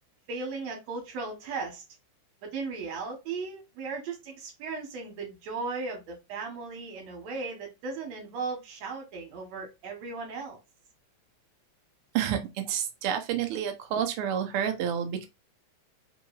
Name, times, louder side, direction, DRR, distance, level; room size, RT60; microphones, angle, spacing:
voice 1, 0.3-1.8 2.4-10.6, right 4 dB, 65° right, 2.3 m, -36 dB
voice 2, 12.7-15.3, right 9 dB, 90° right, 1.2 m, -29 dB
5.0 x 3.1 x 2.3 m
omnidirectional pair, 3.4 m